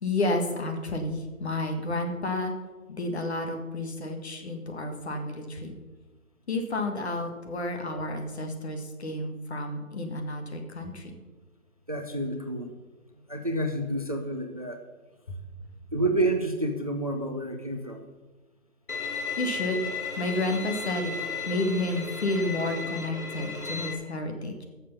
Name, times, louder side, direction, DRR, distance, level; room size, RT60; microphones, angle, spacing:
voice 1, 0.0-2.5 2.9-5.7 6.5-11.2 15.3-15.4 19.4-19.9 20.2-21.1 21.5-24.6, left 2 dB, 50° left, 4 dB, 1.9 m, -31 dB
voice 2, 11.9-12.7 13.3-14.8 15.9-18.1, right 1 dB, 25° right, 5 dB, 0.5 m, -29 dB
Bowed string instrument, 18.9-23.9, left 4 dB, 85° left, 1.9 m, -34 dB
14.0 x 6.9 x 5.5 m, 1.2 s
figure-of-eight pair, 155°, 43 cm